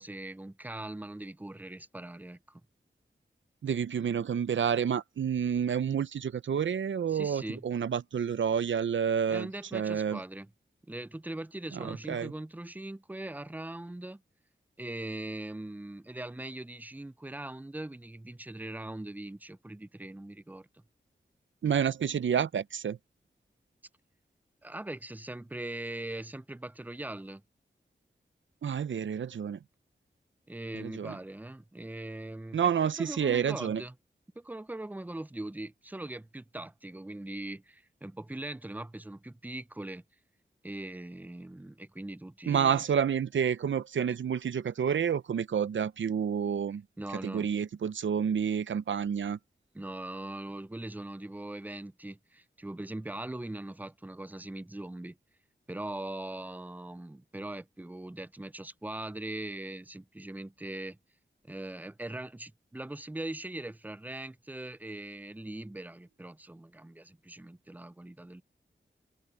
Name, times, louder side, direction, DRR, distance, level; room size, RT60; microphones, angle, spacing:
voice 1, 0.0-2.6 7.1-7.6 9.3-10.5 10.9-14.2 14.8-20.8 24.6-27.4 30.5-32.7 33.0-33.9 34.4-40.0 40.6-42.8 47.0-47.5 49.7-55.2 55.7-61.0 61.4-68.4, right 1 dB, 10° right, 0.5 m, -41 dB
voice 2, 3.6-10.2 11.7-12.3 21.6-23.0 28.6-29.6 30.7-31.2 32.5-33.8 42.5-46.8 47.2-49.4, right 7 dB, 80° right, 0.6 m, -29 dB
wide cardioid pair, 70°, 19 cm